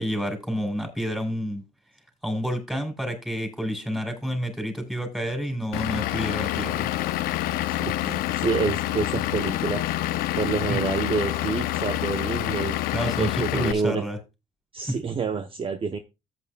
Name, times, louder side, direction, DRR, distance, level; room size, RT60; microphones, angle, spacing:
voice 1, 0.0-1.6 2.2-6.9 10.7-10.8 12.9-14.2 14.9-15.0, equal, 5° right, 4.9 m, -29 dB
Vehicle / Engine, 5.7-13.7, left 14 dB, 80° left, 0.7 m, -27 dB
voice 2, 7.7-9.8 10.4-12.7 13.2-14.0 14.7-16.0, right 5 dB, 35° right, 0.9 m, -28 dB
14.0 x 8.8 x 2.3 m
supercardioid pair, 65°, 15 cm